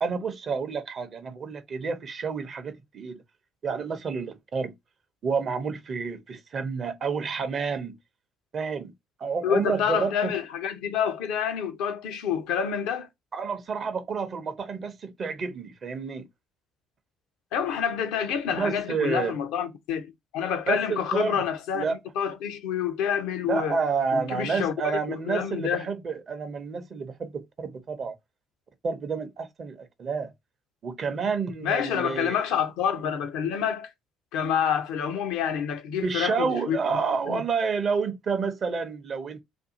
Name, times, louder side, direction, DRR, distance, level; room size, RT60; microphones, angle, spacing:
voice 1, 0.0-3.2 3.6-4.7 5.2-8.0 8.5-8.9 9.2-10.3 13.3-16.2 18.5-19.4 20.7-21.4 21.7-22.0 23.4-28.1 28.8-30.3 30.8-32.4 36.0-39.4, right 5 dB, 45° right, 0.6 m, -29 dB
voice 2, 9.4-13.1 17.5-21.9 22.2-23.8 24.1-25.9 31.6-33.9 34.3-36.8 37.3-37.4, left 8 dB, 65° left, 0.5 m, -28 dB
2.5 x 2.3 x 2.6 m
figure-of-eight pair, 50°, 0 cm